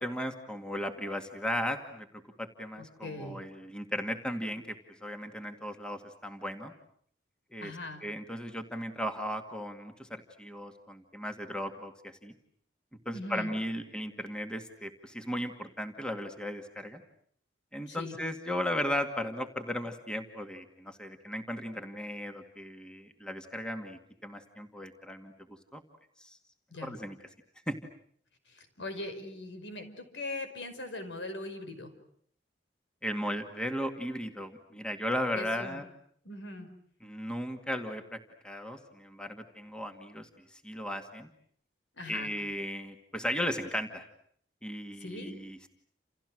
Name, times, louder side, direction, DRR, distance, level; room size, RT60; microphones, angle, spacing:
voice 1, 0.0-2.1 2.4-4.8 5.0-6.7 7.5-7.7 8.0-12.3 13.1-17.0 17.7-25.3 25.7-25.8 26.2-26.4 26.8-27.2 27.7-27.8 33.0-35.8 37.0-40.3 40.6-41.3 42.1-44.0 44.6-45.7, equal, 5° left, 5 dB, 2.2 m, -36 dB
voice 2, 2.8-3.4 7.6-8.0 13.1-13.5 17.9-18.2 26.7-27.0 28.5-31.9 35.4-35.8 36.2-36.7 42.0-42.3 45.0-45.3, left 2 dB, 80° left, 8 dB, 5.5 m, -40 dB
30.0 x 29.5 x 6.4 m, 0.63 s
head